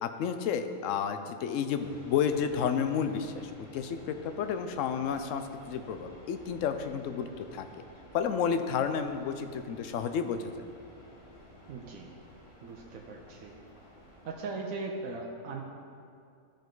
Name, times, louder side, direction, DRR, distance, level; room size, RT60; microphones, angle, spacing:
voice 1, 0.0-7.7 8.1-10.5, left 7 dB, 70° left, 8 dB, 0.9 m, -31 dB
sound 1, 1.8-14.3, equal, 85° left, 2.0 m, -53 dB
voice 2, 11.7-12.1 12.6-13.5 14.3-15.6, right 3 dB, 75° right, 0 dB, 1.1 m, -39 dB
13.0 x 5.1 x 3.9 m, 2.4 s
omnidirectional pair, 1.5 m